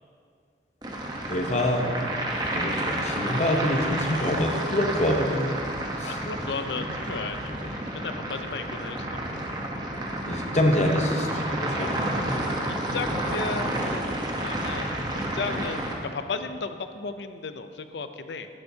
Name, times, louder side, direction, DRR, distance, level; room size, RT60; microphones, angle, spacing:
sound 1, 0.8-15.9, right 1 dB, 25° right, 0.9 m, -30 dB
voice 1, 1.3-1.9 2.5-5.5 6.0-6.2 10.3-12.5, left 1 dB, 40° left, 2 dB, 0.9 m, -26 dB
voice 2, 6.0-7.5 7.9-9.1 9.3-9.5 12.9-14.9 15.3-15.9 16.1-18.5, left 4 dB, 75° left, 9 dB, 0.6 m, -34 dB
12.5 x 11.0 x 2.8 m, 2.3 s
head